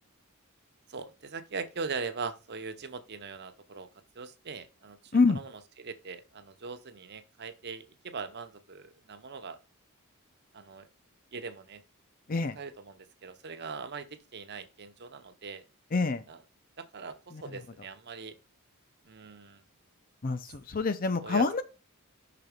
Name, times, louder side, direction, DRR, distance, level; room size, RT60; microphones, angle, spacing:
voice 1, 0.9-3.9 4.1-5.5 5.8-9.6 10.5-10.9 11.3-11.8 12.6-15.6 16.3-16.4 16.8-18.4 19.0-19.6 21.2-21.6, right 4 dB, 50° right, 0.8 m, -41 dB
voice 2, 15.9-16.2 17.3-17.4 20.2-21.6, left 4 dB, 40° left, 0.6 m, -26 dB
5.9 x 3.9 x 5.0 m
head